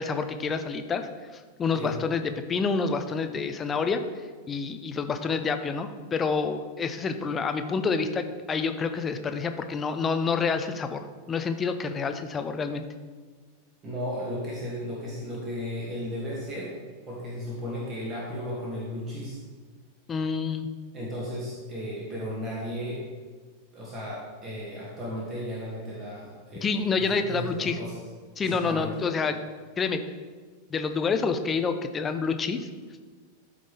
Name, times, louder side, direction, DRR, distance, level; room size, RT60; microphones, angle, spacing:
voice 1, 0.0-12.9 20.1-20.7 26.6-27.8 28.4-29.4 29.8-30.0 30.7-32.7, left 5 dB, 20° left, 8 dB, 0.6 m, -28 dB
voice 2, 13.8-16.7 17.1-19.4 20.9-23.0 23.7-27.9 28.4-28.9, equal, 30° right, -5 dB, 2.2 m, -35 dB
13.0 x 5.0 x 3.5 m, 1.5 s
figure-of-eight pair, 90°, 0 cm